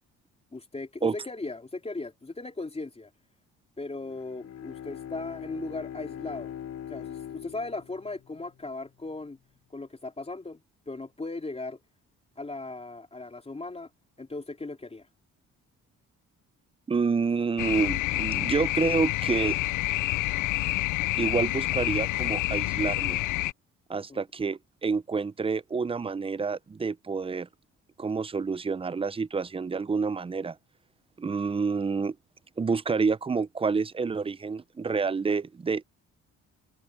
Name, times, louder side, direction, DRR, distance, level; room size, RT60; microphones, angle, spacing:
voice 1, 0.5-3.1 3.8-6.5 6.9-9.4 9.7-11.8 12.4-13.9 14.2-15.1 24.1-24.2, left 2 dB, 20° left, 3.8 m, -37 dB
Bowed string instrument, 4.0-8.8, left 9 dB, 60° left, 3.6 m, -41 dB
voice 2, 16.9-19.6 21.2-23.2 23.9-27.5 28.0-30.6 31.2-32.2 32.6-35.8, right 4 dB, 20° right, 0.5 m, -28 dB
sound 1, 17.6-23.5, left 19 dB, 90° left, 0.5 m, -28 dB
open air
cardioid pair, 90°, 30 cm